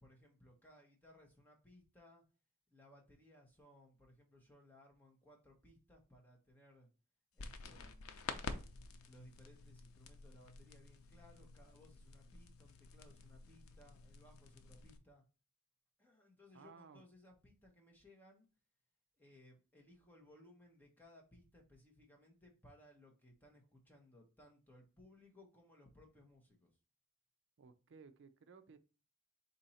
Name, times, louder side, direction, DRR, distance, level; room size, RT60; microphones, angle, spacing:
voice 1, 0.0-2.2 2.7-6.9 7.3-8.5 9.0-15.2 16.0-18.5 19.2-26.7, left 1 dB, 10° left, -1 dB, 1.1 m, -63 dB
sound 1, 7.4-15.0, left 4 dB, 75° left, 0.6 m, -50 dB
voice 2, 16.5-17.0 27.6-28.8, right 5 dB, 55° right, 10 dB, 0.5 m, -58 dB
4.3 x 2.8 x 4.1 m, 0.34 s
head